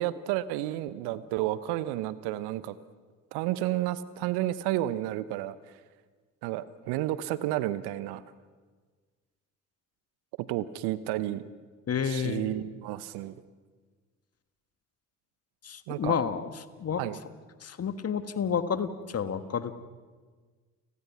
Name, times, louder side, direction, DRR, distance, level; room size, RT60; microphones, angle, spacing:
voice 1, 0.0-2.8 3.3-5.8 6.4-8.2 10.4-11.4 12.0-13.4 15.9-16.2 17.0-17.2, right 14 dB, 60° right, 16 dB, 1.0 m, -31 dB
voice 2, 11.9-12.5 15.6-16.5 16.8-17.0 17.6-19.7, left 7 dB, 35° left, 11 dB, 1.5 m, -30 dB
30.0 x 18.5 x 5.9 m, 1.5 s
figure-of-eight pair, 55°, 45 cm